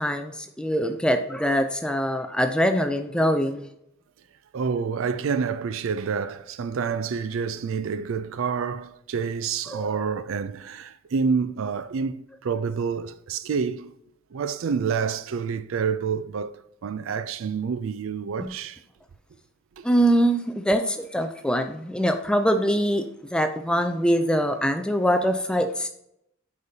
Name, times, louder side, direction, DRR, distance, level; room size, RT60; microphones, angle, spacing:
voice 1, 0.0-3.7 9.7-10.0 18.4-18.5 19.8-23.0 23.3-25.9, equal, 5° left, 0.4 m, -23 dB
voice 2, 4.5-13.9 14.3-18.8 19.8-19.9, right 6 dB, 65° right, 0.4 m, -28 dB
8.1 x 5.1 x 2.8 m
head